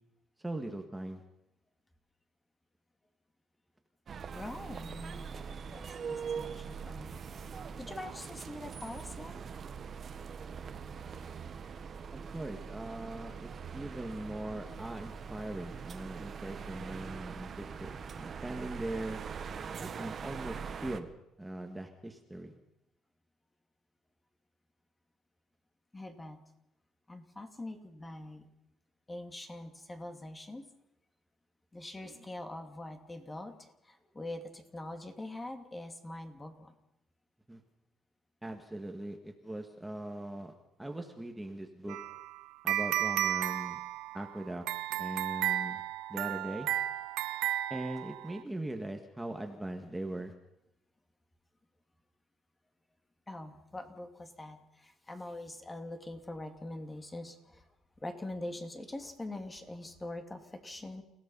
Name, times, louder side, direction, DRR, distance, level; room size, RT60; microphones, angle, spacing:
voice 1, 0.4-1.2 12.1-19.2 19.8-21.1 21.4-22.5 37.5-37.6 38.4-40.5 40.8-42.0 42.6-43.8 44.1-44.6 45.0-45.8 46.1-46.7 47.7-50.3, right 1 dB, 10° right, 3 dB, 1.9 m, -40 dB
sound 1, 4.1-21.0, right 6 dB, 40° right, 1.4 m, -42 dB
voice 2, 4.3-7.2 7.8-9.4 25.9-26.4 27.1-28.5 29.1-30.7 31.7-36.7 53.3-57.7 58.0-61.0, left 1 dB, 15° left, 6 dB, 2.6 m, -44 dB
sound 2, 41.9-48.4, right 13 dB, 85° right, 0.7 m, -34 dB
29.5 x 16.5 x 5.6 m, 0.86 s
cardioid pair, 120°, 0 cm